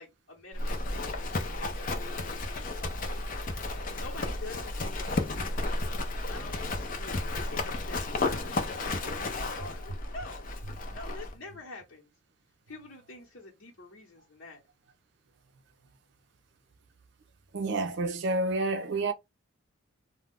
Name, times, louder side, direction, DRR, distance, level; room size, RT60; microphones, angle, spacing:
voice 1, 0.0-3.3 3.9-5.8 6.1-10.5 10.9-12.1 12.7-14.6, left 2 dB, 65° left, 1.0 m, -47 dB
Livestock farm animals working animals, 0.5-11.3, left 2 dB, 40° left, 0.5 m, -33 dB
voice 2, 17.5-19.1, right 2 dB, 55° right, 0.5 m, -29 dB
2.4 x 2.1 x 3.5 m
head